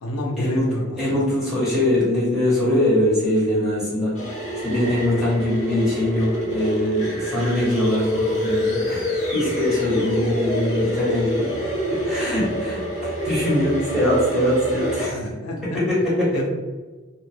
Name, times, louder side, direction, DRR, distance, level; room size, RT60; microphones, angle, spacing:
voice 1, 0.0-1.3 15.1-15.8 16.3-16.5, left 1 dB, 90° left, 1 dB, 0.5 m, -29 dB
voice 2, 1.0-4.1 4.6-11.5 12.0-15.2 15.9-16.5, left 1 dB, ahead, -9 dB, 1.0 m, -22 dB
sound 1, 4.1-15.1, left 1 dB, 30° left, 0.7 m, -26 dB
2.6 x 2.1 x 3.3 m, 1.3 s
head